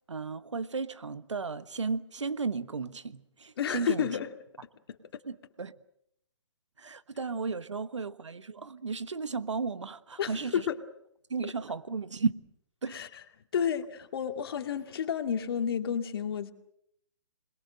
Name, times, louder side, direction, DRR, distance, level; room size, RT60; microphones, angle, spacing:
voice 1, 0.1-4.1 5.3-5.7 6.8-10.7 11.3-12.3 12.8-13.0, right 4 dB, 75° right, 1.4 m, -34 dB
voice 2, 3.6-4.3 4.9-5.0 10.2-10.8 12.9-13.1 13.5-16.5, left 8 dB, 50° left, 2.3 m, -31 dB
27.5 x 21.5 x 7.7 m
figure-of-eight pair, 135°, 15 cm